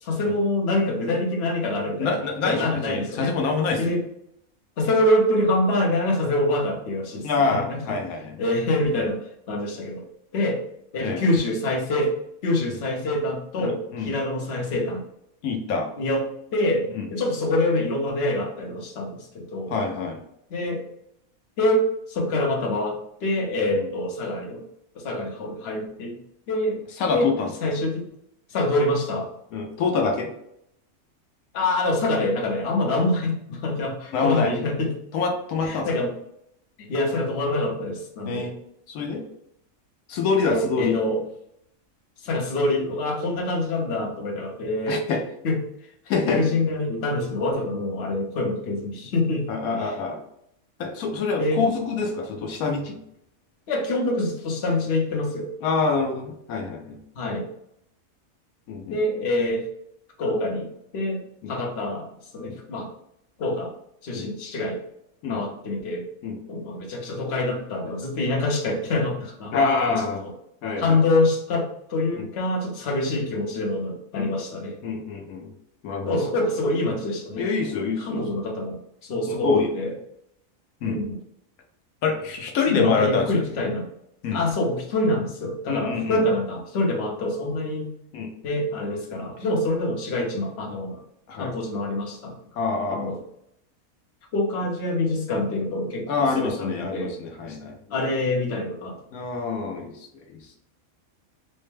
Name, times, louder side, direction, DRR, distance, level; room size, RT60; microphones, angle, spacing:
voice 1, 0.0-3.4 3.8-4.0 4.8-8.0 8.4-9.2 9.5-10.0 10.3-10.6 10.9-12.1 12.4-15.0 16.0-16.2 16.5-19.7 20.5-20.8 21.6-24.6 24.9-26.2 26.5-26.8 27.1-27.3 27.6-28.1 28.5-29.3 31.5-34.9 35.6-36.1 36.8-38.5 40.4-41.2 42.2-45.0 45.4-45.6 46.2-49.5 49.7-49.9 51.4-51.6 53.7-55.5 57.2-57.5 58.9-59.7 60.2-61.2 61.5-62.9 63.4-63.7 64.0-64.8 65.3-66.0 66.5-69.5 69.9-70.3 70.8-74.8 76.1-77.5 78.0-79.9 80.8-81.2 82.7-83.9 84.3-87.9 88.4-91.0 91.4-92.4 92.9-93.2 94.3-97.2 97.5-97.6 97.9-99.0, left 1 dB, 55° left, 0 dB, 1.0 m, -25 dB
voice 2, 2.0-3.8 7.2-8.4 11.0-11.2 13.6-14.1 15.4-15.9 16.9-17.1 19.7-20.2 23.8-23.9 27.0-27.5 29.5-30.3 34.1-34.5 35.1-35.9 38.3-38.5 38.9-39.2 40.1-41.0 44.9-45.2 46.1-46.4 49.5-50.2 50.8-53.0 55.6-57.0 58.7-59.0 61.4-61.6 62.4-62.6 64.1-64.3 65.2-65.4 66.2-66.4 69.5-70.2 70.6-71.0 72.2-72.3 74.1-74.4 74.8-75.5 75.8-76.3 77.4-78.2 79.3-79.7 80.8-81.0 82.0-83.5 84.2-84.4 85.7-86.2 88.1-88.3 91.3-91.5 92.6-93.1 96.1-97.8 99.1-99.9 100.3-100.4, left 4 dB, 90° left, 3 dB, 1.1 m, -26 dB
4.2 x 2.1 x 3.2 m, 0.75 s
omnidirectional pair, 1.5 m